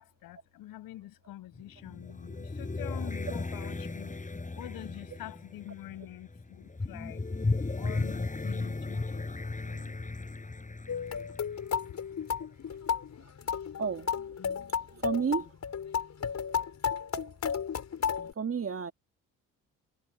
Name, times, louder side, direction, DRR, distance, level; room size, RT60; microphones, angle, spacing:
voice 1, 0.0-4.1 4.6-7.2 7.8-9.2 9.6-9.9, left 15 dB, 85° left, 6.9 m, -46 dB
sound 1, 1.5-12.3, left 3 dB, 25° left, 6.8 m, -36 dB
sound 2, 10.9-18.3, left 7 dB, 55° left, 6.4 m, -33 dB
voice 2, 14.9-15.5 16.5-16.6 18.4-18.9, right 6 dB, 40° right, 2.2 m, -31 dB
cardioid pair, 75°, 34 cm